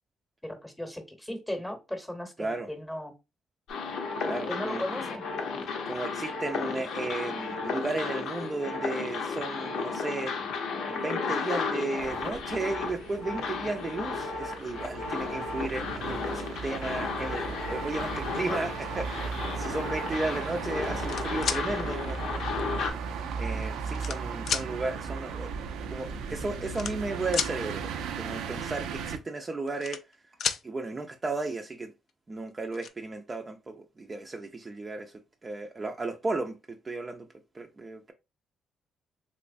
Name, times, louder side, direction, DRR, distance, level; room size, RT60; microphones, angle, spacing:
voice 1, 0.4-3.1 4.5-5.2, left 1 dB, 5° left, 0.9 m, -36 dB
voice 2, 2.4-2.7 4.2-4.8 5.9-10.3 10.9-22.5 23.4-25.5 25.9-30.0 30.6-31.9 32.3-35.1 35.4-36.6 36.8-37.3 37.5-38.1, right 3 dB, 30° right, 0.4 m, -34 dB
sound 1, 3.7-22.9, left 4 dB, 85° left, 0.8 m, -34 dB
sound 2, 12.0-29.2, right 6 dB, 90° right, 0.4 m, -37 dB
sound 3, 20.8-21.6 22.6-22.7 23.5-24.2 24.5-24.7 25.8-25.9 26.1-26.3 26.7-27.5 29.4-30.1 30.4-30.6 32.1-32.2 32.5-32.9, left 7 dB, 65° left, 0.4 m, -31 dB
3.0 x 3.0 x 2.5 m
cardioid pair, 90°, 0 cm